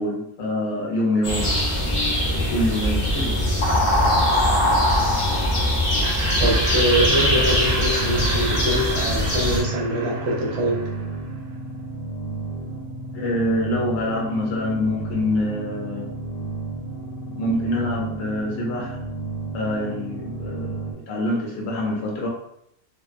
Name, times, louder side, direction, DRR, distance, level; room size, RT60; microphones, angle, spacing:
voice 1, 0.0-1.5 2.2-3.4 13.1-16.1 17.3-19.0 19.5-22.3, left 1 dB, 65° left, -2 dB, 0.9 m, -25 dB
sound 1, 1.2-9.6, left 1 dB, 40° left, 0.4 m, -21 dB
Laughter, 6.0-11.3, right 3 dB, 85° right, 0.5 m, -33 dB
voice 2, 6.4-10.9, right 1 dB, 60° right, -2 dB, 0.8 m, -23 dB
sound 2, 7.6-20.9, right 3 dB, 85° left, 1.1 m, -33 dB
2.5 x 2.1 x 2.3 m, 0.74 s
omnidirectional pair, 1.5 m